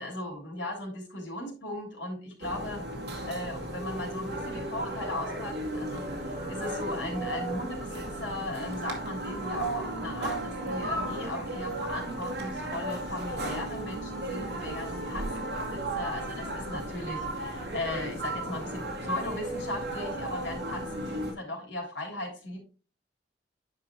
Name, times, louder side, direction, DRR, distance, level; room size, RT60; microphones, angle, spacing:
voice 1, 0.0-2.8 3.2-22.6, left 1 dB, 80° left, -1 dB, 3.3 m, -37 dB
sound 1, 2.4-21.3, right 1 dB, 65° right, 2.3 m, -35 dB
10.0 x 5.1 x 3.1 m, 0.36 s
head